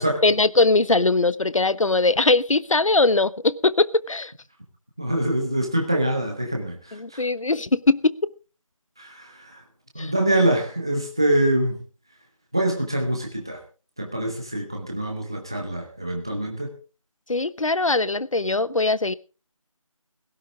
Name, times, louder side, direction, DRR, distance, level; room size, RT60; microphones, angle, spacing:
voice 1, 0.2-4.3 6.9-8.3 10.0-10.1 17.3-19.1, left 3 dB, 70° left, 1.0 m, -21 dB
voice 2, 5.0-7.2 9.0-9.6 9.9-11.8 12.5-13.6 14.0-16.7, right 1 dB, 10° right, 0.8 m, -25 dB
17.0 x 13.0 x 3.7 m
figure-of-eight pair, 175°, 17 cm